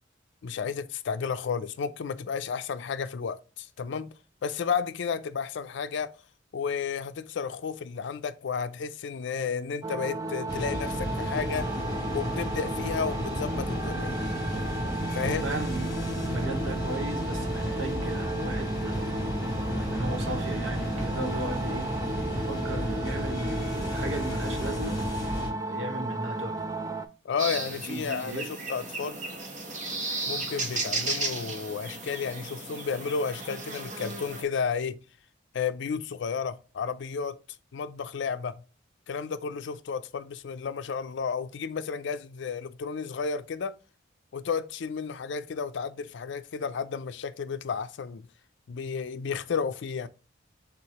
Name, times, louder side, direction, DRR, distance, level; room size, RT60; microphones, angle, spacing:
voice 1, 0.4-4.1 4.4-6.1 6.5-11.7 12.1-14.1 15.1-15.4 27.2-29.2 30.3-35.0 35.5-37.4 37.7-38.6 39.1-43.8 44.3-48.3 48.7-50.1, left 6 dB, 65° left, 0.4 m, -32 dB
sound 1, 9.8-27.1, right 3 dB, 15° right, 0.3 m, -34 dB
sound 2, 10.5-25.5, left 1 dB, 25° left, 1.7 m, -33 dB
voice 2, 15.2-15.9 16.2-19.2 19.7-25.0 25.6-26.6 27.9-28.5, right 2 dB, 85° right, 0.9 m, -36 dB
sound 3, 27.4-34.4, right 3 dB, 40° right, 1.0 m, -34 dB
4.7 x 3.5 x 2.9 m
head